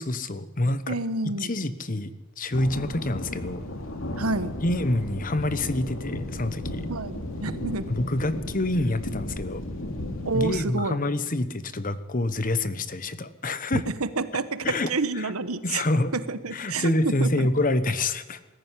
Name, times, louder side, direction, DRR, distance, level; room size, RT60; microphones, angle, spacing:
voice 1, 0.0-1.0 1.4-3.6 4.6-6.8 7.9-9.6 10.3-13.8 14.6-14.9 15.2-15.3 15.6-16.1 16.5-18.4, left 2 dB, 40° left, 13 dB, 1.1 m, -27 dB
voice 2, 0.9-1.5 4.2-4.5 6.9-7.8 10.2-11.0 13.7-15.8 16.1-17.5, right 3 dB, 85° right, 12 dB, 1.3 m, -29 dB
sound 1, 2.5-10.7, left 1 dB, 65° left, 2.6 m, -34 dB
21.0 x 14.0 x 9.9 m, 1.1 s
head